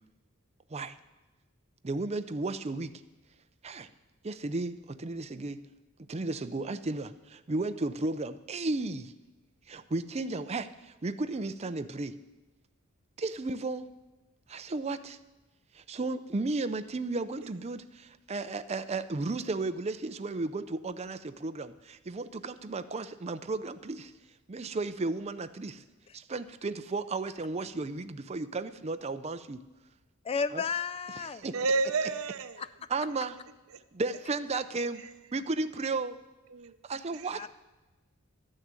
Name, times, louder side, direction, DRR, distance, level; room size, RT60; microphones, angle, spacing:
voice 1, 1.8-2.9 3.6-3.9 4.2-5.6 6.1-9.1 9.7-12.1 13.2-13.9 14.5-15.2 15.7-24.1 24.5-25.8 26.1-29.6 30.5-30.6 31.2-31.5 32.9-33.4 33.9-35.0 35.3-36.2 36.8-37.5, right 3 dB, 30° right, 10 dB, 0.5 m, -34 dB
voice 2, 30.3-31.4 37.3-37.5, left 5 dB, 30° left, 14 dB, 0.3 m, -32 dB
voice 3, 31.5-32.6 33.7-33.8 35.0-35.1 36.5-36.8 37.1-37.5, right 3 dB, 80° right, 12 dB, 0.7 m, -31 dB
12.5 x 6.5 x 8.9 m, 1.1 s
head